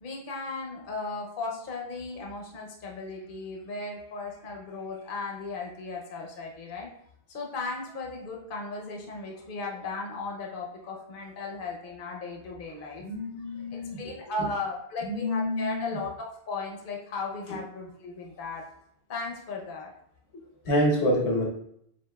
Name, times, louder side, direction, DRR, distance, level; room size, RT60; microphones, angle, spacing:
voice 1, 0.0-6.9 7.3-13.0 13.7-18.7 19.1-19.9, left 3 dB, 55° left, 0 dB, 0.9 m, -36 dB
voice 2, 13.0-14.0 15.0-16.0 20.6-21.4, equal, 90° left, -2 dB, 1.4 m, -27 dB
7.5 x 2.8 x 2.2 m, 0.69 s
omnidirectional pair, 1.1 m